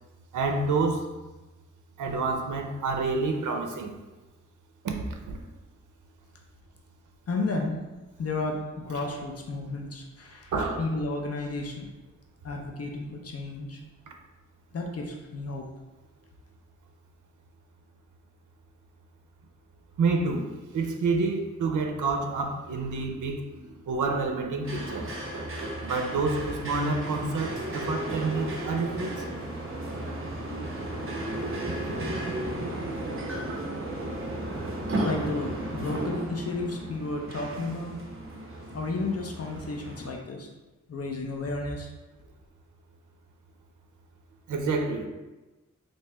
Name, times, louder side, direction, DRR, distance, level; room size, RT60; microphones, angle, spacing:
voice 1, 0.3-1.1 2.0-3.9 4.8-5.4 8.9-9.1 10.5-10.9 20.0-25.1 25.8-29.2 32.6-32.7 44.5-45.1, right 3 dB, 85° right, 4 dB, 0.5 m, -28 dB
voice 2, 7.3-7.8 8.2-11.9 12.4-13.8 14.7-15.7 34.9-38.0 38.7-40.5 40.9-41.9, left 2 dB, 55° left, 1 dB, 0.5 m, -32 dB
sound 1, 24.6-40.1, right 1 dB, 45° right, 0.7 m, -34 dB
3.1 x 2.7 x 3.4 m, 1.1 s
wide cardioid pair, 135°, 30 cm